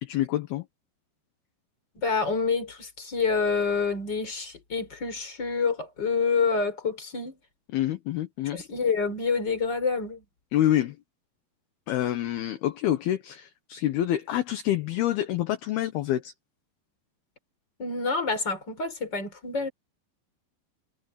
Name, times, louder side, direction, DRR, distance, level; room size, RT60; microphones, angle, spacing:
voice 1, 0.0-0.6 7.7-8.6 10.5-11.0 11.9-16.3, left 13 dB, 70° left, 2.8 m, -27 dB
voice 2, 1.9-7.4 8.5-10.2 17.8-19.7, left 4 dB, 25° left, 5.0 m, -27 dB
omnidirectional pair, 5.1 m